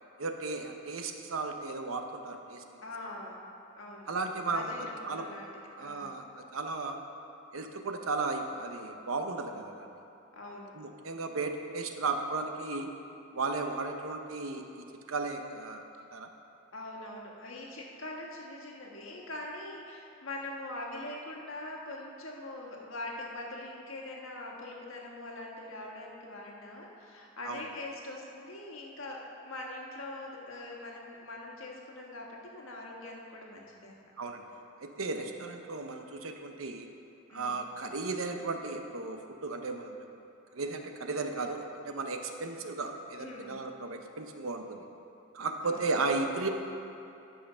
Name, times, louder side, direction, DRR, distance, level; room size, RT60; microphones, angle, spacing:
voice 1, 0.2-2.6 4.1-5.3 5.8-7.0 7.5-9.9 10.7-12.9 13.3-15.8 16.1-16.3 27.4-27.6 34.2-34.4 34.8-36.9 37.3-40.0 40.5-44.8 45.3-46.5, right 3 dB, 90° right, 5 dB, 0.8 m, -35 dB
voice 2, 2.8-3.4 3.8-4.1 4.5-5.5 5.8-6.1 10.3-10.7 16.7-34.1 37.3-37.6 43.2-43.6 45.6-45.8, left 2 dB, 80° left, -1 dB, 1.5 m, -43 dB
12.0 x 5.7 x 5.6 m, 2.8 s
head